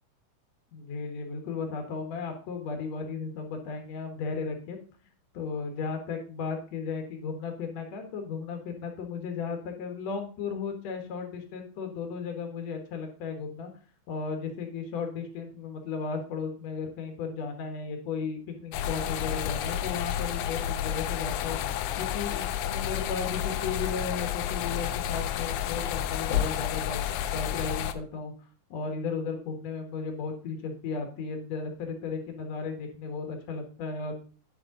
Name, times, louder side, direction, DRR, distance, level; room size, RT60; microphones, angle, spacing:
voice 1, 0.7-4.8 5.3-13.7 14.1-21.6 22.0-27.0 27.3-28.3 28.7-34.2, left 5 dB, 60° left, 4 dB, 2.4 m, -35 dB
sound 1, 18.7-27.9, left 10 dB, 80° left, 1.8 m, -30 dB
8.8 x 6.7 x 3.7 m, 0.39 s
omnidirectional pair, 3.9 m